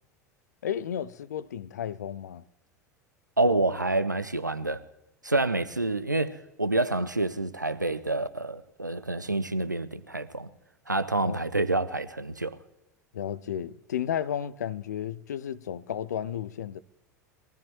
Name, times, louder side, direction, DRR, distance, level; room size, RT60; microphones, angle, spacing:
voice 1, 0.6-2.4 11.2-11.4 13.1-16.8, left 9 dB, 70° left, 0.5 m, -33 dB
voice 2, 3.4-4.8 5.2-10.5 10.9-12.6, right 2 dB, 90° right, 0.6 m, -28 dB
22.0 x 14.0 x 3.1 m
figure-of-eight pair, 80°, 10 cm